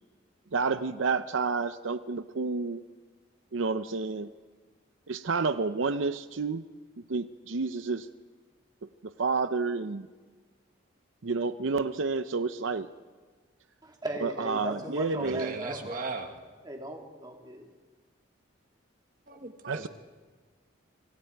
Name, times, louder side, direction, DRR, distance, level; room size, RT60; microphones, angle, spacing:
voice 1, 0.5-2.8 3.5-4.3 5.1-6.7 7.1-8.1 9.0-10.1 11.2-12.9 14.2-15.6 19.7-19.9, right 4 dB, 80° right, 11 dB, 0.7 m, -30 dB
voice 2, 13.8-16.0 16.6-17.7, right 1 dB, 20° right, 1 dB, 2.9 m, -37 dB
voice 3, 15.2-16.3 19.3-19.9, right 3 dB, 45° right, 4 dB, 1.7 m, -37 dB
27.0 x 25.0 x 4.7 m, 1.4 s
head